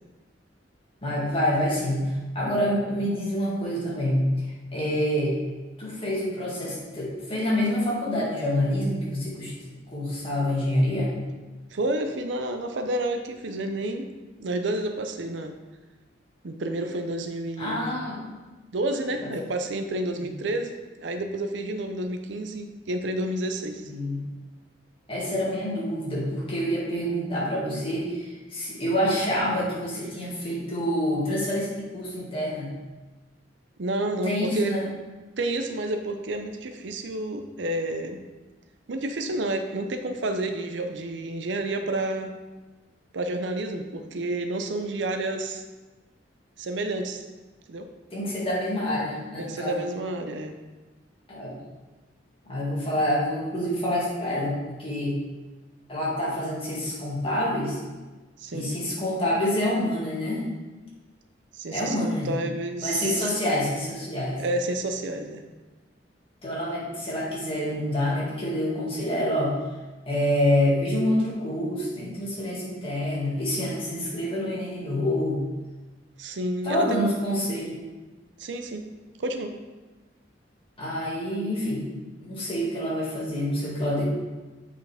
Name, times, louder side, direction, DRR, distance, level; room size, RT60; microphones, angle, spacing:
voice 1, 1.0-4.5 4.7-5.4 5.8-9.5 9.9-11.1 17.6-18.2 19.2-19.3 20.1-20.3 23.8-24.2 25.1-32.7 34.2-34.8 48.1-49.8 51.3-51.6 52.5-55.2 55.9-57.8 58.5-60.4 61.7-62.3 62.8-64.4 66.4-69.6 70.1-75.4 76.6-77.8 80.8-81.9 82.2-84.0, left 1 dB, 30° left, -6 dB, 2.1 m, -27 dB
voice 2, 11.7-14.1 14.4-15.6 16.4-17.9 18.7-23.9 33.8-34.7 35.4-38.2 38.9-42.3 43.1-45.6 46.6-47.2 47.7-47.9 49.4-50.5 58.4-58.8 61.5-63.3 64.4-65.4 76.2-77.0 78.4-78.9 79.2-79.5, right 1 dB, 75° right, 6 dB, 0.6 m, -30 dB
7.9 x 4.7 x 3.5 m, 1.2 s
head